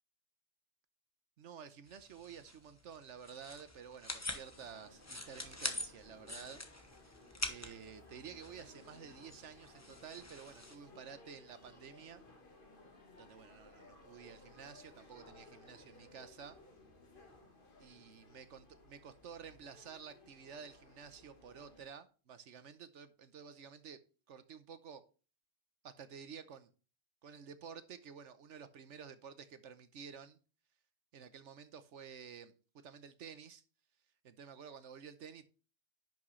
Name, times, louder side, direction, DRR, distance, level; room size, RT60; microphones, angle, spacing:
voice 1, 1.4-6.6 7.5-12.2 13.2-16.6 17.8-24.0 24.3-25.0 25.8-26.7 27.2-30.4 31.1-33.6 34.2-35.5, right 7 dB, 70° right, 1.1 m, -52 dB
sound 1, 1.9-10.8, left 2 dB, 15° left, 1.0 m, -45 dB
sound 2, 4.1-21.8, left 2 dB, 45° left, 1.7 m, -60 dB
10.5 x 6.1 x 3.1 m
omnidirectional pair, 1.3 m